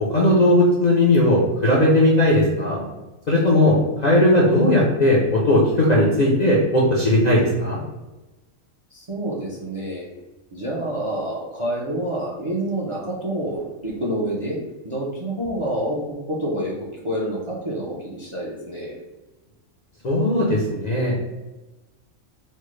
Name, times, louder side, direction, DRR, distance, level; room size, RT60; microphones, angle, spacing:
voice 1, 0.1-2.8 3.3-7.8 20.0-21.1, left 1 dB, 50° left, -5 dB, 0.5 m, -17 dB
voice 2, 8.9-10.1 10.5-14.6 14.8-16.8 17.0-19.0, right 1 dB, 40° right, -4 dB, 0.4 m, -27 dB
4.3 x 2.1 x 3.1 m, 1.1 s
omnidirectional pair, 1.4 m